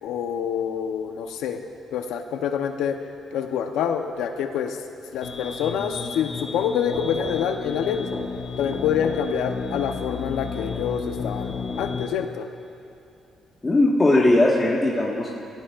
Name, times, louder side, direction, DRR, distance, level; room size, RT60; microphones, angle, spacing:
voice 1, 0.0-1.6 1.9-3.0 3.3-4.8 5.1-8.1 8.6-12.5, left 8 dB, 90° left, 5 dB, 0.9 m, -26 dB
sound 1, 5.2-12.1, left 5 dB, 45° left, 1.2 m, -32 dB
voice 2, 13.6-15.3, left 2 dB, 25° left, -4 dB, 1.6 m, -19 dB
25.0 x 16.0 x 2.5 m, 2.7 s
cardioid pair, 90°, 0 cm